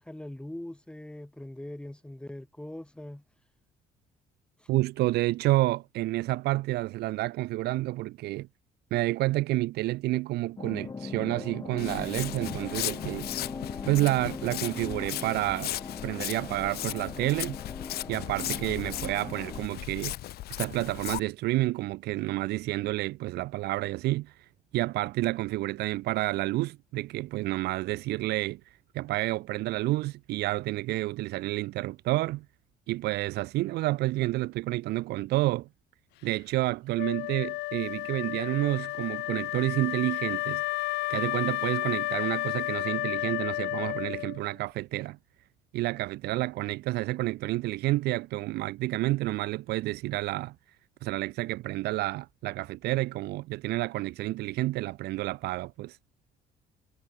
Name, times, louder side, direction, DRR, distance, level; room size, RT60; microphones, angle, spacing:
voice 1, 0.0-3.2 4.6-4.7, left 1 dB, 5° left, 6.2 m, -41 dB
voice 2, 4.7-8.5 8.9-13.3 13.9-15.7 16.0-17.6 18.1-20.1 20.6-24.3 24.7-28.6 28.9-32.4 32.9-35.7 36.2-40.6 41.1-45.2 45.7-50.5 51.0-56.0, right 18 dB, 75° right, 0.5 m, -29 dB
sound 1, 10.6-19.7, left 4 dB, 20° left, 1.8 m, -40 dB
Walk footsteps, 11.8-21.2, left 15 dB, 70° left, 0.9 m, -37 dB
Wind instrument woodwind instrument, 37.0-44.5, left 19 dB, 85° left, 1.5 m, -32 dB
cardioid pair, 110°, 17 cm